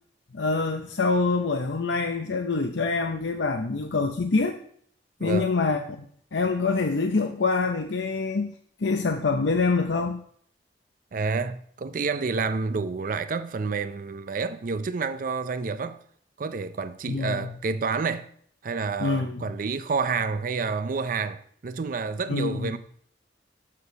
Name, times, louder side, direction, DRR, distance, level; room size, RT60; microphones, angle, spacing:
voice 1, 0.3-4.6 5.2-6.1 6.3-8.5 8.8-10.2 17.1-17.5 19.0-19.5 22.3-22.7, left 4 dB, 80° left, 0.7 m, -25 dB
voice 2, 11.1-16.0 16.4-18.3 18.6-22.8, right 4 dB, 50° right, 0.5 m, -29 dB
6.9 x 6.7 x 6.7 m
head